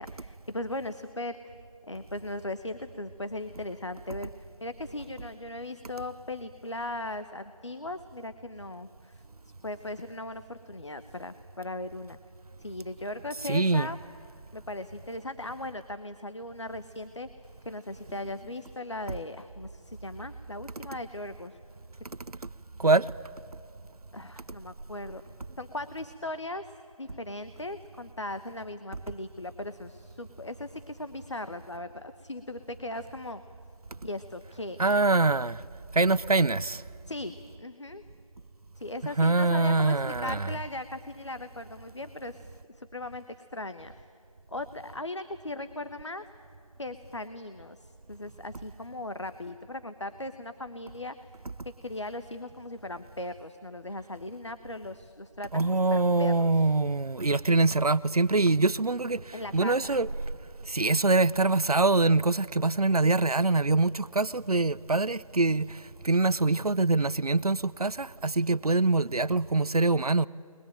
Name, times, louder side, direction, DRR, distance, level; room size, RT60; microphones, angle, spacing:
voice 1, 0.0-1.5 1.9-9.2 9.6-12.2 12.6-14.0 14.5-17.3 17.6-21.6 24.1-25.2 25.6-26.6 27.0-33.4 34.0-34.8 37.0-38.0 38.8-43.2 43.5-43.9 44.5-46.2 46.8-51.1 51.6-56.7 59.3-60.0, left 2 dB, 50° left, 1.0 m, -38 dB
voice 2, 13.4-13.9 22.8-23.1 34.8-35.7 35.9-36.8 39.2-40.5 55.5-60.1 60.6-70.3, right 3 dB, 85° right, 0.6 m, -24 dB
29.0 x 21.5 x 9.0 m
figure-of-eight pair, 170°, 19 cm